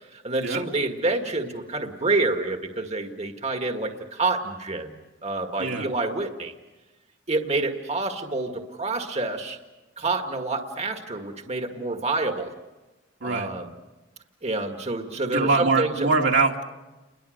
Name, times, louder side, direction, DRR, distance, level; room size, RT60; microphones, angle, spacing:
voice 1, 0.1-6.5 7.3-9.6 10.0-12.5 13.2-13.7 14.4-16.1, right 3 dB, 35° right, 4 dB, 1.8 m, -28 dB
voice 2, 5.6-5.9 13.2-13.5 15.3-16.6, right 3 dB, 75° right, 1 dB, 2.5 m, -23 dB
30.0 x 22.0 x 6.6 m, 1.1 s
head